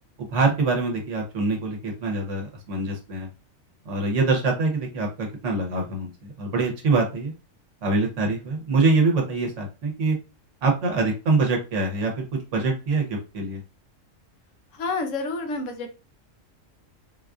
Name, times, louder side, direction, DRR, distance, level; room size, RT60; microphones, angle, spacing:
voice 1, 0.3-3.3 3.9-7.3 7.8-10.2 10.6-13.6, right 3 dB, 65° right, 1 dB, 1.2 m, -24 dB
voice 2, 14.7-15.9, left 3 dB, 75° left, 6 dB, 1.0 m, -29 dB
3.8 x 2.4 x 2.3 m, 0.31 s
omnidirectional pair, 1.4 m